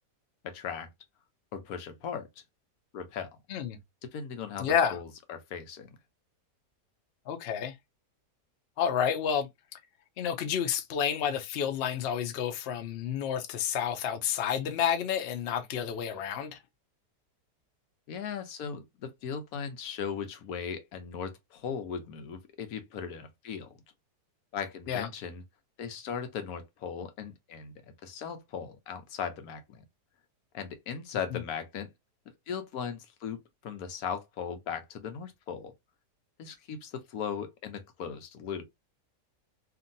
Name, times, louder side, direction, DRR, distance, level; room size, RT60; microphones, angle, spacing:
voice 1, 0.4-0.9 1.5-2.3 2.9-3.3 4.1-5.9 18.1-23.7 24.5-25.4 25.8-27.7 28.0-29.8 30.5-31.9 32.5-35.7 36.4-38.6, left 7 dB, 70° left, 1.1 m, -38 dB
voice 2, 4.6-5.0 7.3-7.7 8.8-9.5 10.2-16.6 24.9-25.1 31.3-31.4, left 8 dB, 90° left, 0.5 m, -30 dB
2.8 x 2.5 x 2.6 m
omnidirectional pair, 1.8 m